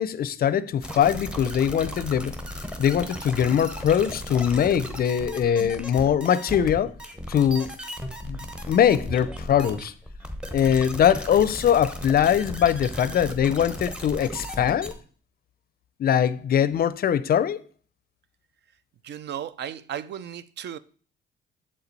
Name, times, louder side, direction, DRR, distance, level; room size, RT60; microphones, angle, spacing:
voice 1, 0.0-2.3 2.8-6.9 7.3-7.7 8.3-8.4 8.7-9.9 10.5-14.9 16.0-17.6, left 9 dB, 50° left, 0.4 m, -22 dB
sound 1, 0.8-14.9, equal, 5° right, 0.9 m, -36 dB
voice 2, 19.0-20.8, right 9 dB, 60° right, 0.4 m, -35 dB
7.2 x 4.3 x 4.0 m
cardioid pair, 90°, 20 cm